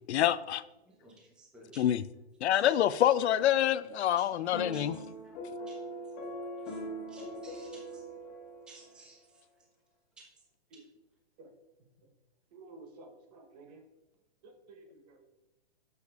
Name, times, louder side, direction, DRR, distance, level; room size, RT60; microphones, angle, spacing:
voice 1, 0.1-0.6 1.8-2.0 2.4-5.0, left 11 dB, 75° left, 16 dB, 0.5 m, -26 dB
voice 2, 0.9-1.8 2.5-2.8 4.2-4.8 5.2-5.8 6.6-6.8 7.1-8.0 8.7-9.2 10.2-10.3 10.7-10.8, right 2 dB, 5° right, -2 dB, 0.5 m, -56 dB
sound 1, 4.5-9.0, equal, 35° left, 1.3 m, -41 dB
voice 3, 12.5-13.8 14.4-15.3, right 3 dB, 35° right, 5 dB, 1.0 m, -53 dB
8.1 x 6.9 x 2.3 m, 1.0 s
hypercardioid pair, 155°, 33 cm